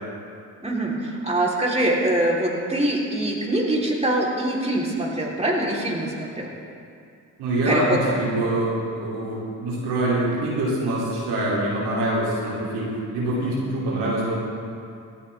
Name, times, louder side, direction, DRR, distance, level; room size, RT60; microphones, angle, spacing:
voice 1, 0.6-6.5 7.6-8.0, right 1 dB, 15° right, -4 dB, 3.5 m, -24 dB
voice 2, 7.4-14.4, right 1 dB, 90° right, -6 dB, 3.0 m, -25 dB
18.5 x 11.5 x 3.5 m, 2.5 s
supercardioid pair, 50°, 38 cm